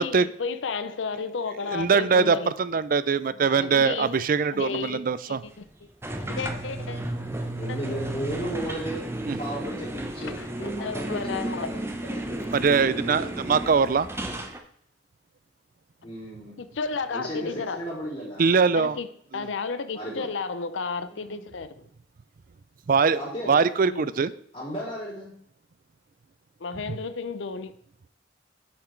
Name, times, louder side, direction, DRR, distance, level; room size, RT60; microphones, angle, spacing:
voice 1, 0.0-2.5 3.5-4.2 4.5-5.0 5.3-5.7 6.4-7.0 7.7-7.8 10.2-11.7 16.6-17.9 18.7-19.1 19.3-21.8 23.8-24.1 26.6-27.7, left 5 dB, 85° left, 0.6 m, -32 dB
voice 2, 1.7-5.4 9.3-9.4 12.5-14.1 18.4-19.0 19.3-19.5 22.9-23.2 23.5-24.3 26.9-27.0, right 5 dB, 50° right, 0.4 m, -22 dB
sound 1, 6.0-14.6, right 1 dB, 15° right, 0.8 m, -33 dB
voice 3, 7.6-9.0 9.4-11.8 12.1-12.5 16.0-16.6 17.1-18.4 19.9-20.3 21.1-21.4 23.1-23.7 24.5-25.3, equal, 35° left, 3.8 m, -35 dB
8.6 x 5.8 x 4.5 m
head